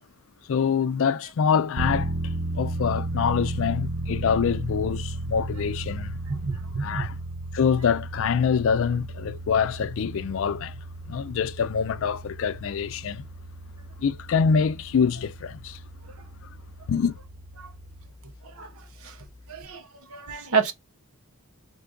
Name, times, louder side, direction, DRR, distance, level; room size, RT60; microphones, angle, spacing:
voice 1, 0.5-6.2 6.8-7.2 7.5-10.8 11.1-13.3 14.0-15.8 16.9-17.2, left 6 dB, 65° left, 0.4 m, -25 dB
sound 1, 1.8-18.1, right 2 dB, 15° right, 0.7 m, -34 dB
voice 2, 6.3-7.1 17.6-17.7 18.4-19.2 19.5-20.7, right 5 dB, 75° right, 0.8 m, -30 dB
3.3 x 2.5 x 3.6 m
head